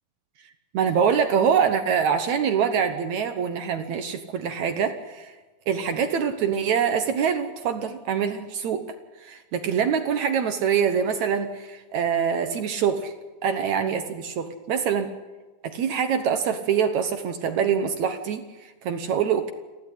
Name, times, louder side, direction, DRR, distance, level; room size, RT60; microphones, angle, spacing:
voice 1, 0.7-5.3 5.7-8.8 9.2-13.1 13.4-15.1 15.6-18.4 18.8-19.5, right 7 dB, 65° right, 8 dB, 2.0 m, -24 dB
28.5 x 11.5 x 10.0 m, 1.3 s
omnidirectional pair, 4.4 m